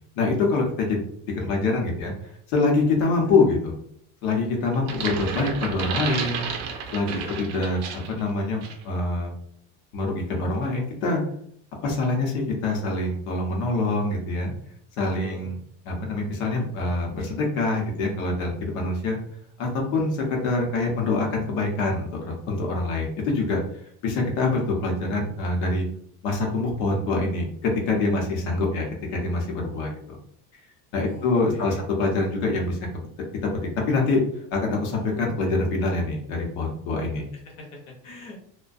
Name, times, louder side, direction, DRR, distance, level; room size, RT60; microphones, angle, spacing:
voice 1, 0.2-1.0 1.3-3.7 4.2-6.4 6.9-9.3 9.9-11.2 11.8-14.5 15.0-15.6 15.8-19.2 19.6-23.6 24.0-25.8 26.2-30.2 30.9-32.8 33.9-34.2 34.5-37.3, left 3 dB, 90° left, 0 dB, 0.8 m, -25 dB
sound 1, 4.7-8.2 8.6-8.8, right 6 dB, 55° right, 0.5 m, -32 dB
voice 2, 7.0-7.4 15.2-15.5 31.0-31.9 37.0-38.4, left 2 dB, 50° left, -1 dB, 0.7 m, -42 dB
2.3 x 2.1 x 2.5 m, 0.66 s
cardioid pair, 155°, 35 cm